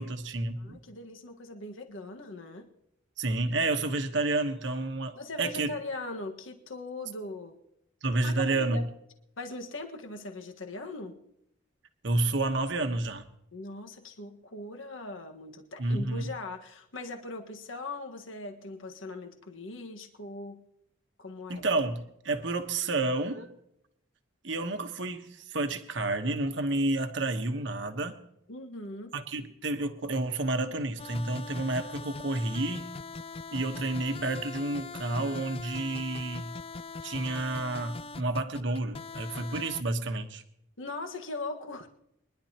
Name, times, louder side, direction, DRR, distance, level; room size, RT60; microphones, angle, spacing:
voice 1, 0.0-0.8 3.2-5.7 8.0-8.8 12.0-13.3 15.8-16.3 21.5-23.5 24.4-28.1 29.1-32.9 33.5-36.5 37.0-40.4, right 2 dB, 60° right, 6 dB, 1.1 m, -30 dB
voice 2, 0.6-2.7 5.1-7.6 8.2-8.8 9.4-11.2 13.5-20.6 21.2-21.7 28.5-29.1 40.8-41.9, left 2 dB, 70° left, 4 dB, 1.5 m, -40 dB
sound 1, 31.0-39.8, left 4 dB, 30° left, 0.4 m, -41 dB
23.5 x 11.0 x 2.9 m, 0.77 s
head